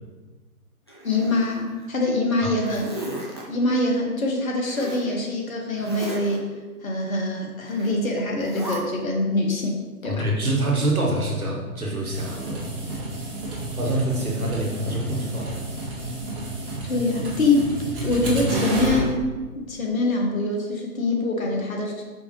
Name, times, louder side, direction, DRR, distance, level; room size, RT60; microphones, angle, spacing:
Zipper (clothing), 0.9-1.9 2.3-3.4 4.7-5.1 5.7-6.4 7.7-8.0 8.4-8.8, right 1 dB, 20° left, 0.3 m, -36 dB
voice 1, 1.0-2.9 3.5-6.5 6.8-10.3 16.8-19.2 19.7-22.0, left 2 dB, 65° left, 0 dB, 1.5 m, -24 dB
voice 2, 10.0-12.6 13.7-15.6, right 1 dB, 70° right, -1 dB, 1.8 m, -25 dB
sound 1, 12.1-19.1, right 2 dB, 40° right, 1.8 m, -30 dB
5.8 x 5.2 x 3.2 m, 1.2 s
figure-of-eight pair, 125°, 44 cm